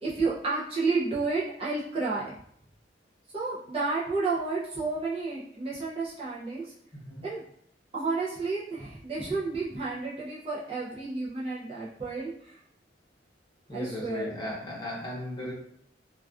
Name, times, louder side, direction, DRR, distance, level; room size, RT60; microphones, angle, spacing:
voice 1, 0.0-2.3 3.3-6.7 7.2-7.4 7.9-12.6 13.7-14.3, right 3 dB, 30° right, -7 dB, 0.4 m, -31 dB
voice 2, 6.9-7.2 13.7-15.5, left 1 dB, 20° left, -6 dB, 0.8 m, -36 dB
2.3 x 2.3 x 2.3 m, 0.69 s
head